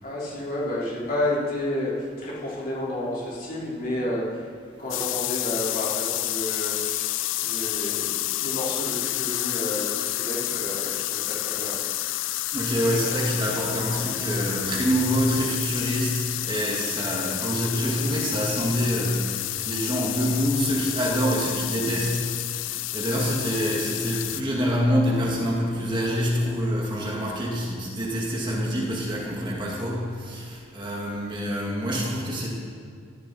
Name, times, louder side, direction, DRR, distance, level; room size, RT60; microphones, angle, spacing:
voice 1, 0.0-4.5 4.8-11.8, left 1 dB, 50° left, -7 dB, 4.9 m, -31 dB
sound 1, 4.9-24.4, left 16 dB, 85° left, 0.4 m, -29 dB
voice 2, 12.5-22.7 22.9-32.5, equal, 25° right, -3 dB, 2.2 m, -26 dB
17.0 x 14.5 x 4.4 m, 2.2 s
head